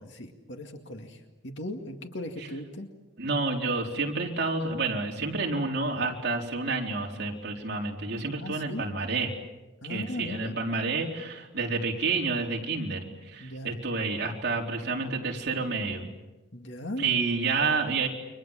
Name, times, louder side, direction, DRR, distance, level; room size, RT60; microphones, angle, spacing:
voice 1, 0.0-2.9 8.4-8.9 9.8-10.6 13.4-13.7 16.5-17.1, left 1 dB, 60° left, 4 dB, 2.2 m, -38 dB
voice 2, 3.2-9.3 9.8-13.0 13.3-16.0 17.0-18.1, right 4 dB, 50° right, 0 dB, 4.1 m, -29 dB
29.5 x 24.5 x 7.5 m, 1.1 s
head